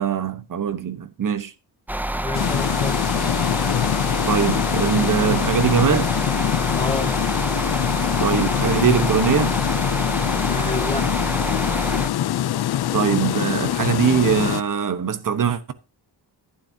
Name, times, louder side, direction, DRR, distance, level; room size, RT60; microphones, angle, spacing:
voice 1, 0.0-1.5 4.3-6.1 8.2-9.5 12.9-15.7, right 7 dB, 50° right, 1.1 m, -22 dB
sound 1, 1.9-12.1, right 1 dB, 5° right, 0.5 m, -27 dB
voice 2, 2.1-3.5 6.7-7.2 10.5-11.1, left 3 dB, 15° left, 2.2 m, -30 dB
sound 2, 2.3-14.6, left 12 dB, 65° left, 0.6 m, -24 dB
12.0 x 11.5 x 2.8 m
wide cardioid pair, 175°, 42 cm